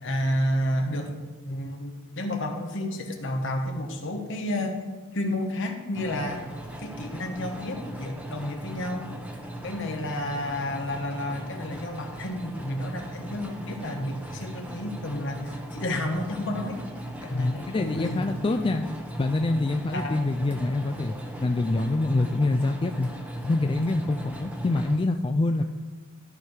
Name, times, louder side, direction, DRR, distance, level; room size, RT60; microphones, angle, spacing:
voice 1, 0.0-1.1 1.4-4.8 5.1-6.4 6.8-9.1 9.6-16.8 17.2-18.2 19.9-20.2, left 1 dB, 60° left, 3 dB, 1.2 m, -31 dB
sound 1, 5.9-25.0, right 1 dB, 5° right, 0.9 m, -38 dB
voice 2, 17.3-18.9 19.2-21.2 21.4-23.1 23.4-25.6, left 2 dB, 25° left, 5 dB, 0.3 m, -25 dB
13.5 x 4.6 x 4.9 m, 1.3 s
head